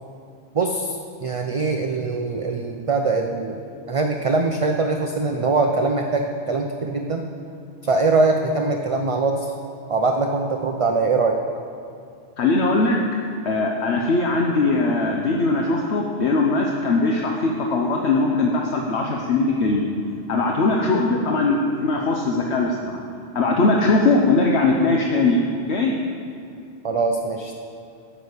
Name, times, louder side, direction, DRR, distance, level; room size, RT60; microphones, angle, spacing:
voice 1, 0.5-3.6 3.9-7.3 7.8-9.5 9.9-11.4 26.8-27.5, right 3 dB, 40° right, 3 dB, 0.5 m, -22 dB
voice 2, 12.4-13.0 13.4-19.9 20.3-22.8 23.3-25.4 25.7-25.9, left 3 dB, 65° left, 0 dB, 1.1 m, -20 dB
9.9 x 7.0 x 8.1 m, 2.6 s
omnidirectional pair, 1.2 m